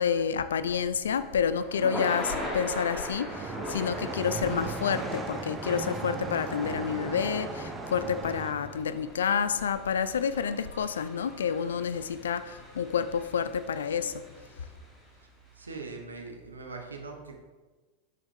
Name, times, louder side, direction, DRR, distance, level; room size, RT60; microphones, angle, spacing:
voice 1, 0.0-14.2, left 7 dB, 70° left, 13 dB, 0.3 m, -29 dB
Thunder / Rain, 1.0-15.1, left 1 dB, 10° left, 1.8 m, -40 dB
sound 1, 3.3-8.5, right 4 dB, 20° right, 0.6 m, -37 dB
voice 2, 15.6-17.3, right 3 dB, 80° right, 2 dB, 0.9 m, -41 dB
7.4 x 5.0 x 3.3 m, 1.3 s
figure-of-eight pair, 85°, 0 cm